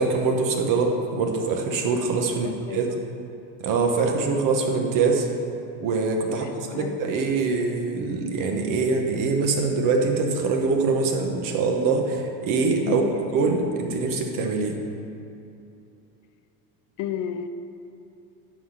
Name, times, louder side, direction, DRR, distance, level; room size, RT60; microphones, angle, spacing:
voice 1, 0.0-2.9 3.6-5.3 5.8-13.0 13.3-14.8, right 4 dB, 50° right, 3 dB, 1.4 m, -24 dB
voice 2, 2.3-3.0 6.3-7.0 12.8-13.1 17.0-17.5, left 8 dB, 45° left, 9 dB, 0.6 m, -33 dB
11.0 x 4.2 x 7.3 m, 2.7 s
supercardioid pair, 135°, 42 cm